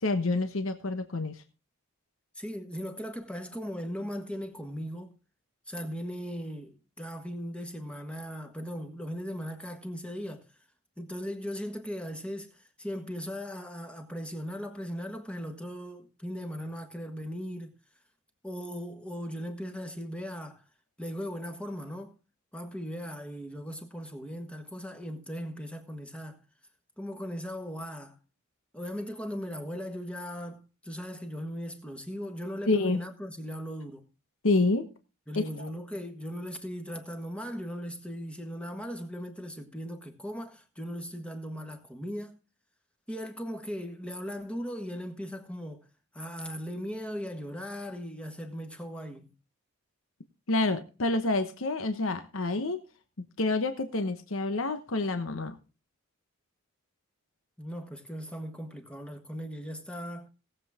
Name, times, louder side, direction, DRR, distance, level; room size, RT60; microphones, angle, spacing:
voice 1, 0.0-1.4 32.7-33.0 34.4-34.9 35.3-35.7 50.5-52.8 53.4-55.6, left 2 dB, 70° left, 1.1 m, -28 dB
voice 2, 2.3-5.1 5.7-10.4 11.0-17.8 18.4-20.6 21.0-22.1 22.5-26.4 27.0-28.2 28.7-34.0 35.3-42.4 43.1-45.9 46.1-49.3 57.6-60.3, equal, 5° left, 1.5 m, -38 dB
18.0 x 7.7 x 3.6 m
head